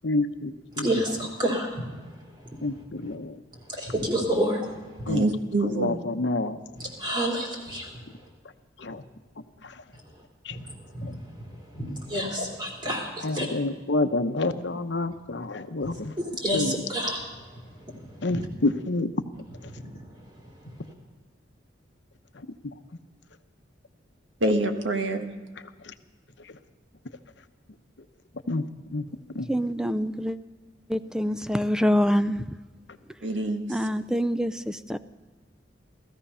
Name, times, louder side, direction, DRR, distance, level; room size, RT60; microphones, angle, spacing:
voice 1, 0.0-1.0 2.6-3.4 5.1-5.2 5.6-6.6 8.8-9.0 9.6-9.8 10.4-10.6 13.2-16.2 16.5-16.8 18.2-19.1 22.3-22.7 25.8-25.9 26.4-26.6 28.5-29.0 29.3-29.5, left 2 dB, 70° left, 9 dB, 0.9 m, -29 dB
voice 2, 0.8-1.9 2.4-2.6 3.7-4.7 5.0-5.1 7.0-7.9 10.5-10.6 10.9-11.1 11.7-13.5 16.2-17.2 19.7-19.9, equal, 25° right, -1 dB, 3.4 m, -28 dB
voice 3, 5.1-6.0 24.4-25.3 33.2-33.8, right 1 dB, 85° right, 5 dB, 1.5 m, -26 dB
voice 4, 29.5-30.4 30.9-32.6 33.7-35.0, equal, 5° right, 12 dB, 0.4 m, -25 dB
16.5 x 14.5 x 5.6 m, 1.3 s
head